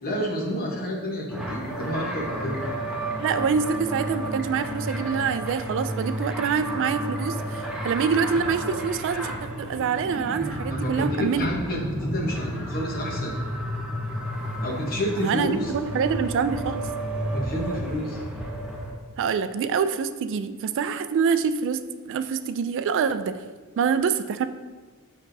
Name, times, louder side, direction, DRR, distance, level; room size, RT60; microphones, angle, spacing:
voice 1, 0.0-2.6 10.7-13.4 14.6-15.7 17.2-18.2, equal, 40° left, -1 dB, 1.1 m, -29 dB
sound 1, 1.3-18.9, right 1 dB, 5° right, 0.9 m, -32 dB
voice 2, 3.2-9.3 9.6-11.5 15.2-16.8 19.2-21.8 22.1-23.4 23.8-24.5, right 6 dB, 60° right, 11 dB, 0.3 m, -25 dB
6.7 x 5.9 x 2.7 m, 1.4 s
head